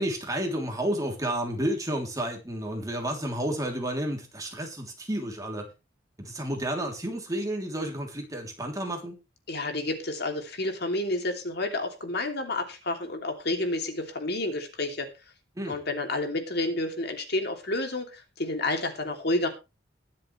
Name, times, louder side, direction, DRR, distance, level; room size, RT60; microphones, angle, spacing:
voice 1, 0.0-5.7 6.2-9.2 15.6-15.8, right 1 dB, 20° right, 2 dB, 3.1 m, -31 dB
voice 2, 9.5-15.1 15.7-19.5, left 2 dB, 60° left, 4 dB, 2.8 m, -30 dB
21.5 x 7.5 x 3.3 m, 0.29 s
head